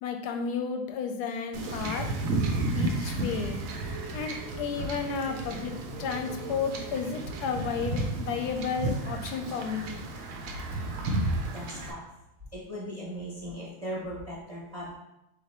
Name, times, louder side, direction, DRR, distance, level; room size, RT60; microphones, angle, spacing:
voice 1, 0.0-2.1 2.7-3.6 4.1-5.7 6.0-10.0, left 6 dB, 70° left, 5 dB, 1.0 m, -32 dB
Wind / Ocean / Boat Water vehicle, 1.5-11.9, right 2 dB, 70° right, 0.8 m, -32 dB
voice 2, 11.5-12.0 12.5-14.9, equal, 30° right, -6 dB, 0.7 m, -38 dB
3.8 x 2.9 x 4.2 m, 0.88 s
omnidirectional pair, 2.1 m